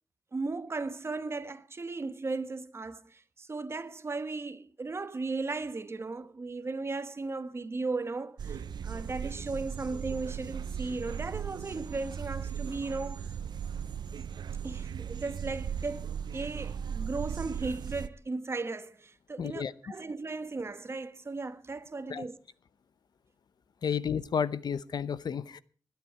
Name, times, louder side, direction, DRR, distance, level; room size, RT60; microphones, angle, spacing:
voice 1, 0.3-13.3 14.6-22.4, right 3 dB, 35° right, 1.2 m, -36 dB
sound 1, 8.4-18.1, right 8 dB, 85° right, 0.7 m, -37 dB
voice 2, 19.4-19.9 22.1-22.2 23.8-25.6, left 7 dB, 75° left, 0.8 m, -32 dB
21.0 x 10.5 x 4.7 m
wide cardioid pair, 110°, 7 cm